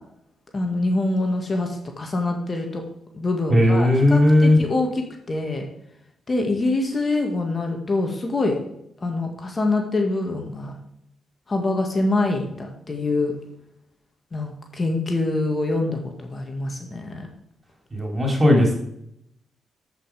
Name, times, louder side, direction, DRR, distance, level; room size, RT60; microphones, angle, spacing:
voice 1, 0.5-2.8 3.1-4.9 5.3-5.7 6.3-8.6 9.0-10.8 11.5-13.3 14.3-17.3, left 2 dB, 35° left, 3 dB, 2.0 m, -25 dB
voice 2, 3.5-4.6 17.9-18.8, left 1 dB, 30° right, 1 dB, 3.8 m, -16 dB
13.5 x 5.6 x 5.0 m, 0.77 s
hypercardioid pair, 40°, 0 cm